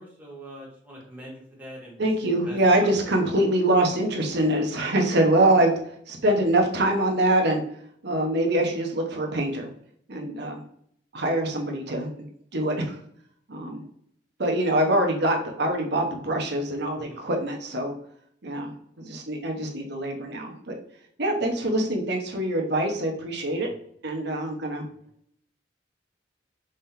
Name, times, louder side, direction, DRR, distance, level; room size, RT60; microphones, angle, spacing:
voice 1, 0.0-2.1 2.4-2.9 16.9-17.2 23.4-23.7, right 1 dB, 10° right, -4 dB, 1.8 m, -44 dB
voice 2, 2.0-5.8 6.1-7.6 8.0-9.7 10.1-10.6 11.1-13.0 13.5-13.8 14.4-17.9 18.4-18.7 19.0-20.7 21.2-23.7 24.0-24.8, right 1 dB, 65° right, 2 dB, 1.1 m, -24 dB
5.1 x 3.8 x 2.7 m, 0.66 s
head